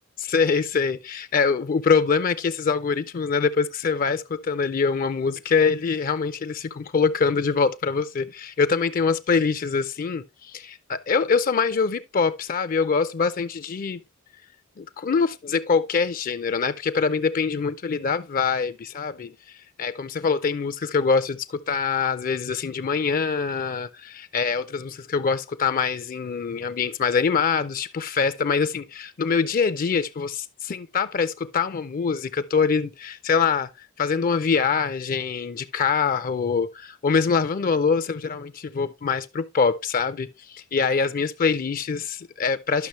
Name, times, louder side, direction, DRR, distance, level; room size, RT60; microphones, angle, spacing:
voice 1, 0.2-14.0 14.8-19.3 19.8-42.9, left 5 dB, 40° left, 0.4 m, -24 dB
11.5 x 6.0 x 3.1 m
head